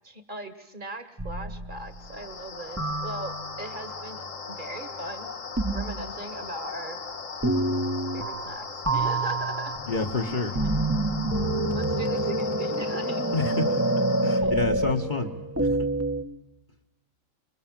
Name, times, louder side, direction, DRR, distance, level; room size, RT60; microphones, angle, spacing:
voice 1, 0.0-5.3 5.7-7.0 8.1-9.8 10.6-11.1 11.7-13.3 14.2-14.7 15.1-15.5, right 2 dB, 40° right, 10 dB, 1.8 m, -39 dB
sound 1, 1.2-2.0 2.8-3.8 5.6-6.1 7.4-8.6 8.9-16.2, right 2 dB, 10° right, 1.0 m, -27 dB
sound 2, 1.8-14.4, left 4 dB, 75° left, 1.8 m, -38 dB
voice 2, 9.9-10.6 13.3-15.3 15.6-15.9, left 3 dB, 35° left, 4 dB, 1.4 m, -29 dB
26.5 x 22.5 x 7.6 m, 0.97 s
omnidirectional pair, 1.4 m